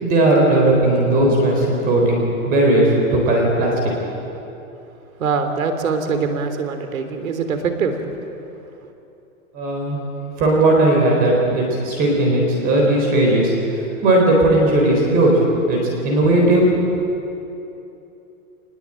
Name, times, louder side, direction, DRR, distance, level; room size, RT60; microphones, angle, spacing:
voice 1, 0.0-2.2 2.5-3.7 9.5-10.1 10.4-13.5 14.0-15.3 15.7-16.7, right 1 dB, 20° right, 0 dB, 4.1 m, -16 dB
voice 2, 5.2-8.1, right 5 dB, 70° right, 7 dB, 3.4 m, -23 dB
26.0 x 20.5 x 8.9 m, 2.8 s
hypercardioid pair, 170°, 42 cm